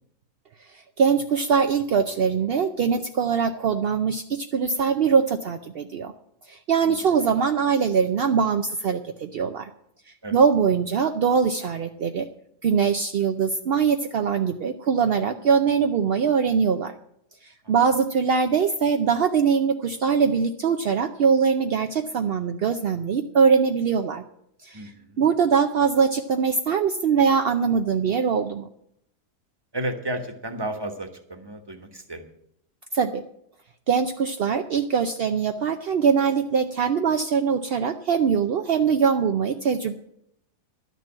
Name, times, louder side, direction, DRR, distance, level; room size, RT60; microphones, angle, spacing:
voice 1, 0.7-6.1 6.5-9.7 10.3-12.3 12.6-16.9 17.4-24.2 24.6-24.9 25.2-28.7 32.9-33.2 33.9-39.9, right 6 dB, 60° right, 7 dB, 0.6 m, -22 dB
voice 2, 24.7-25.2 29.7-32.2, right 1 dB, 15° right, 6 dB, 1.2 m, -33 dB
12.0 x 6.7 x 8.6 m, 0.74 s
omnidirectional pair, 1.7 m